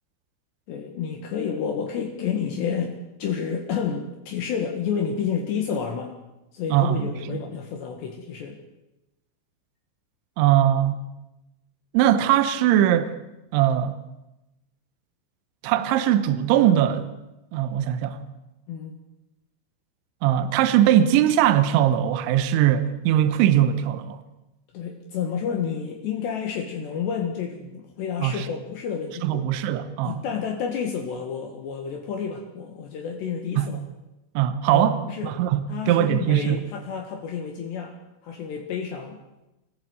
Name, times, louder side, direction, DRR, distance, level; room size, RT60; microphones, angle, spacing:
voice 1, 0.7-6.1 6.5-8.6 18.7-19.0 24.7-29.5 30.0-33.8 34.7-35.3 35.7-38.0 38.2-39.2, left 7 dB, 65° left, 3.6 m, -30 dB
voice 2, 6.7-7.4 10.4-11.0 11.9-13.1 13.5-14.0 15.6-17.1 17.5-18.2 20.2-24.2 28.2-28.5 29.2-30.2 33.6-33.7 34.3-35.0 35.2-36.6, right 11 dB, 75° right, 3.3 m, -21 dB
29.5 x 15.0 x 8.1 m
omnidirectional pair, 5.7 m